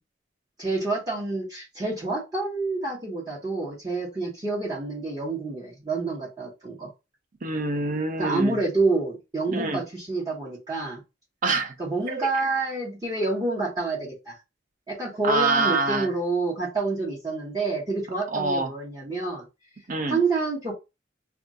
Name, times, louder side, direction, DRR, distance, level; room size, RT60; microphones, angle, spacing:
voice 1, 0.6-6.9 8.2-11.0 11.8-14.4 14.9-19.4 20.1-20.7, right 3 dB, 20° right, 1.0 m, -28 dB
voice 2, 7.4-8.6 9.5-9.8 11.4-11.7 12.1-12.3 15.2-16.1 18.3-18.7 19.9-20.2, right 3 dB, 45° right, 0.6 m, -25 dB
2.4 x 2.3 x 3.9 m
head